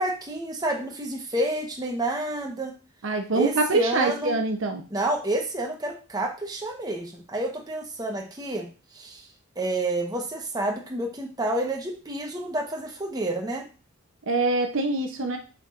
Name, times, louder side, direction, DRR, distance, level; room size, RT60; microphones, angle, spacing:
voice 1, 0.0-2.7 3.3-4.4 4.9-8.7 8.9-9.3 9.6-13.6, right 1 dB, 15° right, 1 dB, 1.0 m, -29 dB
voice 2, 3.0-4.8 14.3-15.4, right 2 dB, 55° right, 5 dB, 0.7 m, -24 dB
6.5 x 5.9 x 2.5 m, 0.34 s
head